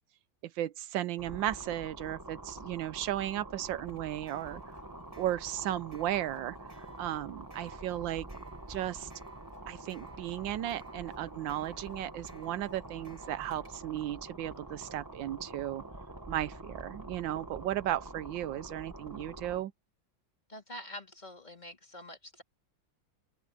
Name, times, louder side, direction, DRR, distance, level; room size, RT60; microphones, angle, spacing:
voice 1, 0.6-4.6 5.2-6.6 7.0-8.3 8.7-9.1 9.7-15.8 16.3-19.7, right 13 dB, 75° right, 1.3 m, -35 dB
sound 1, 1.2-19.6, right 2 dB, 10° right, 1.2 m, -46 dB
sound 2, 3.7-13.7, right 1 dB, 45° right, 7.1 m, -57 dB
voice 2, 20.5-22.4, left 1 dB, 20° left, 2.9 m, -46 dB
open air
omnidirectional pair, 2.2 m